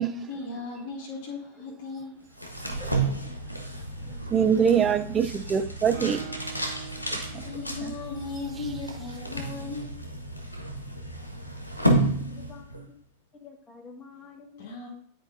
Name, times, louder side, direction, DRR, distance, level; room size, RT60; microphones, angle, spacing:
voice 1, 0.0-2.2 6.2-6.5 7.4-10.0 14.6-14.9, left 3 dB, 50° left, 1.5 m, -37 dB
sound 1, 2.3-12.9, right 1 dB, 85° left, 1.1 m, -31 dB
voice 2, 4.3-6.2, right 7 dB, 25° right, 0.5 m, -23 dB
Guitar, 5.9-9.6, right 6 dB, 80° right, 0.9 m, -44 dB
voice 3, 12.2-13.0 13.3-14.7, left 5 dB, 20° left, 1.3 m, -49 dB
10.0 x 4.6 x 2.6 m
figure-of-eight pair, 90°, 0 cm